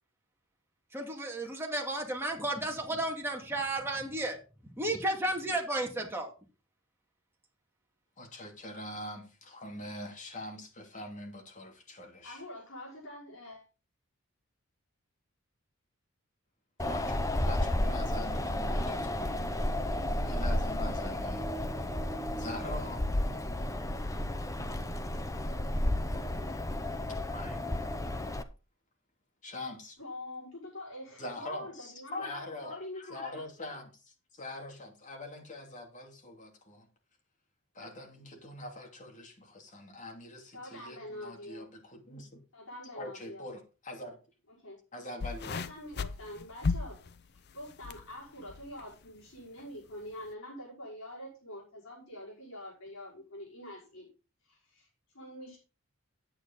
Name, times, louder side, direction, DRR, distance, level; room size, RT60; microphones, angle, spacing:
voice 1, 0.9-4.4 4.8-6.3, right 1 dB, 10° right, 0 dB, 2.3 m, -33 dB
voice 2, 8.2-12.4 16.8-19.5 20.2-21.5 22.4-23.1 27.1-28.0 29.4-30.0 31.2-36.9 37.7-42.4 43.0-44.2 44.9-45.6, left 1 dB, 35° left, 2 dB, 3.0 m, -44 dB
voice 3, 12.2-13.6 30.0-33.4 40.5-41.7 42.5-43.4 44.5-44.8 45.5-47.0 47.3-54.1 54.4-54.9 55.1-55.6, left 1 dB, 65° left, -4 dB, 5.6 m, -45 dB
Wind, 16.8-28.4, left 1 dB, 15° left, 0.8 m, -32 dB
sound 1, 45.2-48.0 48.4-48.8 49.6-49.7, left 4 dB, 50° left, 0.6 m, -35 dB
9.7 x 8.9 x 4.0 m, 0.31 s
head